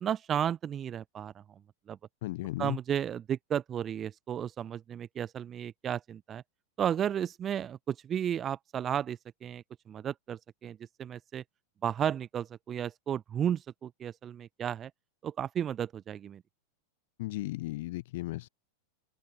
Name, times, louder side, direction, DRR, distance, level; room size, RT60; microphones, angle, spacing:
voice 1, 0.0-1.4 1.9-2.0 2.6-6.4 6.8-11.4 11.8-14.9 15.2-16.4, right 9 dB, 25° right, 1.4 m, -33 dB
voice 2, 2.2-2.8 17.2-18.5, left 18 dB, 50° left, 3.2 m, -35 dB
open air
figure-of-eight pair, 90°, 0 cm